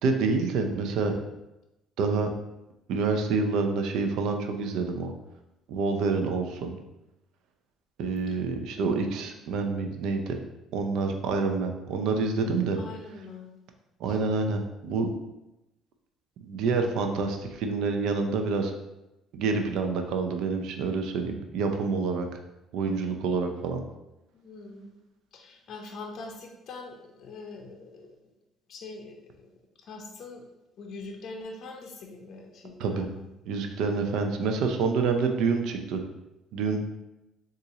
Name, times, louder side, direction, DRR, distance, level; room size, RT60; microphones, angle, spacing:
voice 1, 0.0-1.1 2.0-2.3 2.9-5.1 5.7-6.8 8.0-10.4 10.7-12.8 14.0-15.1 16.4-18.7 19.3-22.3 22.7-23.8 32.8-33.1 33.5-36.0 36.5-36.8, right 4 dB, 75° right, 5 dB, 0.4 m, -27 dB
voice 2, 12.7-13.5 14.1-14.2 24.3-25.0 25.3-28.1 28.7-29.5 29.8-30.5 30.8-33.3 33.8-34.0, left 3 dB, 60° left, 1 dB, 0.5 m, -43 dB
4.0 x 2.4 x 2.8 m, 0.94 s
cardioid pair, 90°, 0 cm